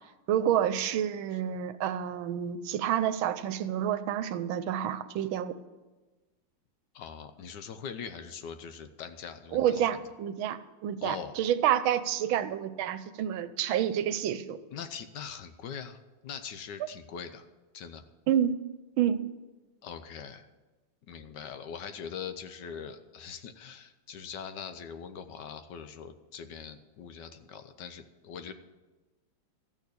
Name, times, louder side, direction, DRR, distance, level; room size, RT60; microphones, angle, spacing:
voice 1, 0.3-5.6 9.5-14.6 18.3-18.5 19.0-19.2, right 10 dB, 85° right, 13 dB, 1.5 m, -29 dB
voice 2, 6.9-9.8 11.0-11.3 14.7-16.0 16.2-17.4 17.7-18.0 19.8-20.5 21.1-28.5, left 7 dB, 65° left, 9 dB, 1.3 m, -42 dB
13.5 x 6.5 x 8.2 m, 1.2 s
omnidirectional pair, 2.2 m